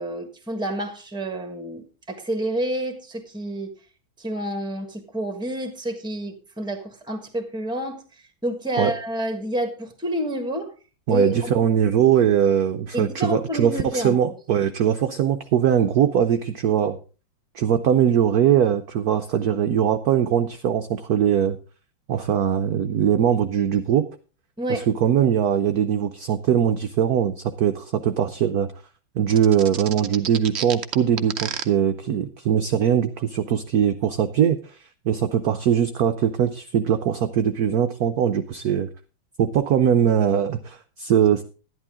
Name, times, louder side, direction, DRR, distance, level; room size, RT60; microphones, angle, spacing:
voice 1, 0.0-3.7 4.2-8.0 8.4-10.7 11.1-11.5 12.9-14.1 24.6-24.8, right 1 dB, 5° right, 7 dB, 1.2 m, -29 dB
voice 2, 11.1-17.0 17.5-21.6 22.1-24.1 24.7-28.7 29.2-34.6 35.1-38.9 39.4-41.4, right 9 dB, 70° right, 8 dB, 0.9 m, -21 dB
sound 1, 29.3-31.6, right 8 dB, 85° right, 0.5 m, -30 dB
11.5 x 11.0 x 3.6 m, 0.34 s
omnidirectional pair, 2.2 m